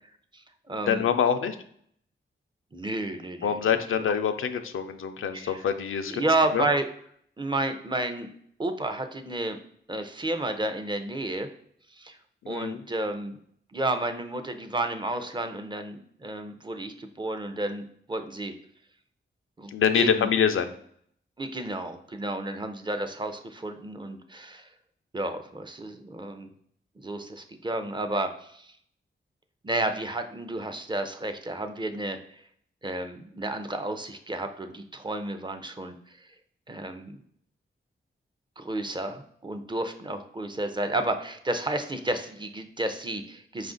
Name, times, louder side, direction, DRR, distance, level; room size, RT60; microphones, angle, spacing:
voice 1, 0.3-1.0 2.7-3.6 4.1-4.2 5.3-5.6 6.1-6.8 7.4-8.3 8.6-9.6 9.9-11.5 11.9-12.2 12.5-13.4 13.7-18.5 19.6-20.3 21.4-24.7 25.1-26.5 27.0-28.7 29.6-32.4 32.8-36.2 36.7-37.2 38.6-43.7, right 2 dB, 25° right, 7 dB, 0.5 m, -31 dB
voice 2, 0.9-1.6 3.4-6.3 6.5-6.7 12.4-12.8 19.7-20.7, left 7 dB, 80° left, 8 dB, 0.4 m, -25 dB
4.8 x 2.5 x 3.8 m, 0.65 s
wide cardioid pair, 80°, 21 cm